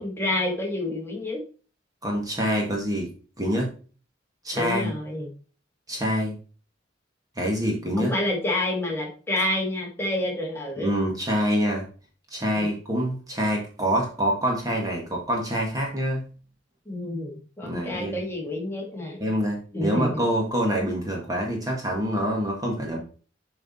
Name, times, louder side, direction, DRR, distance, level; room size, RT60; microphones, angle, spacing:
voice 1, 0.0-1.4 4.5-5.3 8.0-11.0 12.5-12.7 16.9-19.2 19.7-20.3, left 1 dB, 15° left, -2 dB, 2.1 m, -28 dB
voice 2, 2.0-3.1 3.4-3.7 4.4-4.9 5.9-6.3 7.4-8.1 10.8-11.8 12.3-16.2 17.6-18.2 19.2-23.0, equal, 20° right, 0 dB, 1.6 m, -26 dB
7.6 x 4.8 x 4.2 m, 0.39 s
head